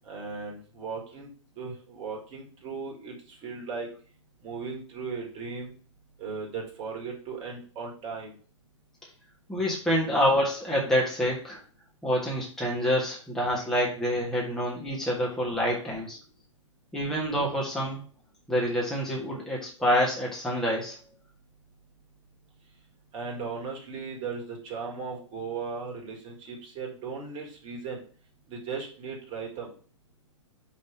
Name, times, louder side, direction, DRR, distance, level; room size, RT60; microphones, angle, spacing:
voice 1, 0.1-1.3 1.6-3.9 4.4-5.7 6.2-8.3 23.1-28.0 28.5-29.7, right 5 dB, 30° right, 0 dB, 1.8 m, -37 dB
voice 2, 9.5-11.6 12.0-16.2 16.9-18.0 18.5-21.0, equal, 5° left, -4 dB, 1.4 m, -27 dB
5.3 x 3.3 x 5.6 m, 0.41 s
figure-of-eight pair, 110°, 16 cm